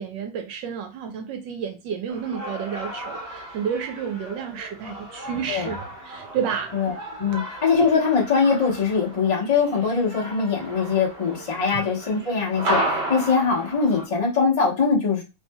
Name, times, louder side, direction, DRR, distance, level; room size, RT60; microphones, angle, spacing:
voice 1, 0.0-6.7 11.7-11.8, right 7 dB, 75° right, 6 dB, 1.1 m, -30 dB
sound 1, 2.1-14.1, right 1 dB, 55° right, 1.8 m, -34 dB
voice 2, 6.7-15.2, left 5 dB, 45° left, -3 dB, 0.4 m, -22 dB
3.9 x 2.8 x 2.2 m, 0.28 s
omnidirectional pair, 2.4 m